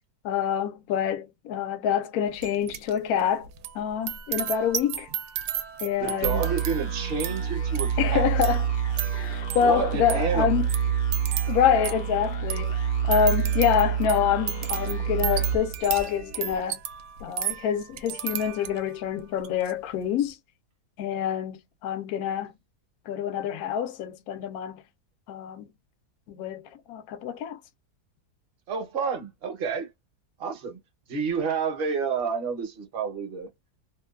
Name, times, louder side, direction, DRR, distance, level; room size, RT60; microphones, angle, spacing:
voice 1, 0.2-3.5 3.7-5.1 5.8-6.5 8.0-8.7 9.1-10.7 11.5-16.8 17.2-20.4 21.0-22.5 23.1-24.8 25.3-25.7 26.3-27.6, left 8 dB, 75° left, 1.0 m, -26 dB
sound 1, 2.4-2.9 3.2-19.0 19.4-19.7, right 9 dB, 80° right, 1.1 m, -35 dB
voice 2, 6.0-8.3 9.6-10.5 28.7-29.9 30.4-30.8 31.1-33.5, right 5 dB, 45° right, 0.9 m, -29 dB
sound 2, 6.2-16.5, right 8 dB, 45° left, 0.6 m, -28 dB
2.9 x 2.2 x 2.2 m
omnidirectional pair, 1.7 m